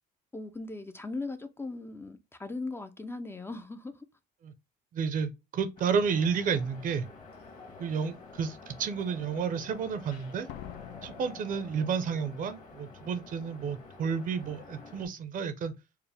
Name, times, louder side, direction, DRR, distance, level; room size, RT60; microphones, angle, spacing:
voice 1, 0.3-4.1, left 3 dB, 15° left, 0.4 m, -38 dB
voice 2, 4.9-7.1 7.8-10.5 11.0-15.7, right 6 dB, 50° right, 0.7 m, -31 dB
sound 1, 5.8-15.1, left 3 dB, 50° left, 1.5 m, -49 dB
Slam, 7.3-7.4 8.0-8.4 10.5-12.4 12.6-12.7, left 11 dB, 85° left, 0.4 m, -47 dB
4.6 x 2.1 x 3.3 m
cardioid pair, 110°, 17 cm